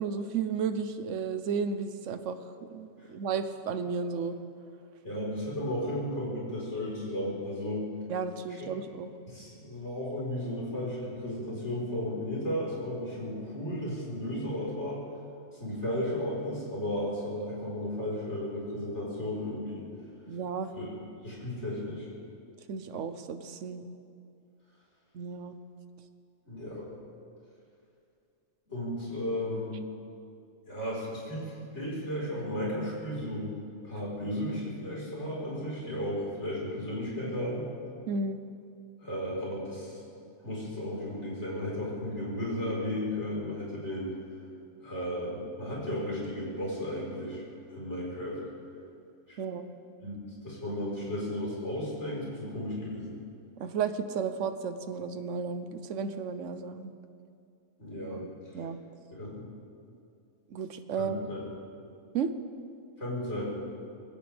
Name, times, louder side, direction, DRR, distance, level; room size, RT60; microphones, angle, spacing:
voice 1, 0.0-2.4 2.7-4.4 8.1-9.1 20.3-20.7 22.7-23.9 25.1-25.6 38.1-38.4 49.4-49.7 53.6-56.9 58.1-58.8 60.5-61.2 62.1-62.4, right 5 dB, 75° right, 10 dB, 1.2 m, -33 dB
voice 2, 5.0-7.9 8.5-8.6 9.3-15.0 15.5-19.8 20.7-20.9 21.2-22.1 26.4-26.9 28.7-29.8 30.7-33.6 33.8-37.7 39.0-40.0 40.4-44.2 44.8-47.4 47.7-48.4 49.3-49.4 50.0-53.2 57.8-58.2 58.5-58.6 59.1-59.4 60.9-61.4 63.0-63.5, left 1 dB, 60° left, -6 dB, 5.0 m, -34 dB
21.5 x 17.0 x 3.5 m, 2.4 s
omnidirectional pair, 1.3 m